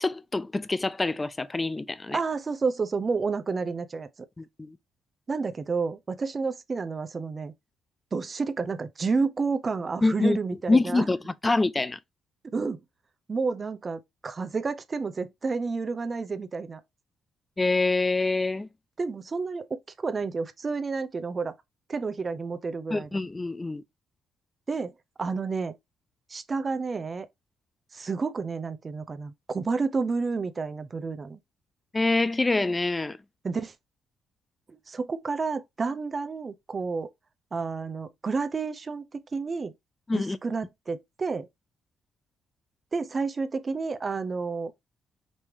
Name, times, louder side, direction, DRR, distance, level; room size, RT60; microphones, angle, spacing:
voice 1, 0.0-2.2 4.4-4.8 10.0-10.4 10.7-12.0 17.6-18.7 22.9-23.8 31.9-33.2 40.1-40.4, left 2 dB, 20° left, 0.5 m, -25 dB
voice 2, 2.1-4.1 5.3-7.5 8.1-11.0 12.5-12.8 13.3-16.8 19.0-21.5 21.9-23.2 24.7-24.9 25.2-25.8 26.3-27.3 27.9-31.4 33.4-33.7 34.7-37.1 37.5-39.7 40.1-41.5 42.9-44.7, right 4 dB, 35° right, 0.6 m, -30 dB
5.4 x 2.9 x 3.2 m
cardioid pair, 90°, 0 cm